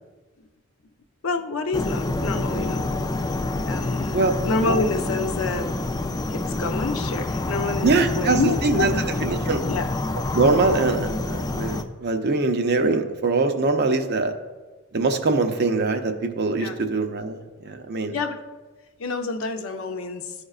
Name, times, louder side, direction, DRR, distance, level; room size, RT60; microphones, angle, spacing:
voice 1, 1.2-2.8 3.7-5.7 6.3-9.3 9.5-9.9 16.6-16.8 18.1-18.4 19.0-20.3, left 3 dB, 65° left, 6 dB, 0.7 m, -27 dB
sound 1, 1.7-11.8, left 2 dB, 15° left, 0.3 m, -27 dB
voice 2, 7.8-9.6 10.3-14.3 14.9-18.2, right 3 dB, 50° right, 6 dB, 0.6 m, -23 dB
14.0 x 5.0 x 2.4 m, 1.3 s
head